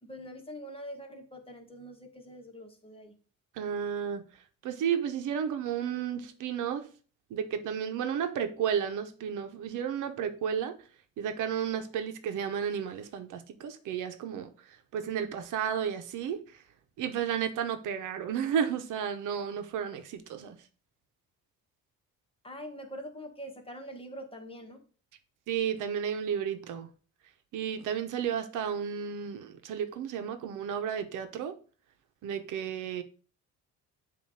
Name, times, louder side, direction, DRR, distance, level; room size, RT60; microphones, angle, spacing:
voice 1, 0.0-3.1 22.4-24.8, equal, 20° left, 1.4 m, -44 dB
voice 2, 3.5-4.2 4.6-6.9 7.3-10.8 11.2-16.6 17.0-20.6 25.5-26.9 27.5-31.5 32.2-33.0, right 8 dB, 85° right, 0.8 m, -32 dB
7.2 x 2.6 x 5.6 m
cardioid pair, 90°, 30 cm